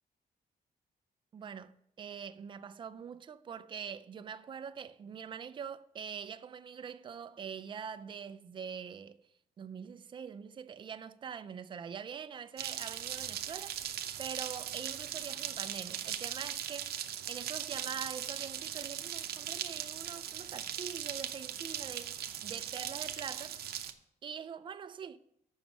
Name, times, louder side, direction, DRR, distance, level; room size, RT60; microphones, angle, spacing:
voice 1, 1.3-9.2 9.6-13.7 14.2-16.9 17.3-23.6 24.2-25.2, right 7 dB, 30° right, 0.4 m, -44 dB
sound 1, 12.6-23.9, right 10 dB, 85° right, 0.7 m, -39 dB
7.1 x 6.1 x 7.0 m
wide cardioid pair, 175°, 16 cm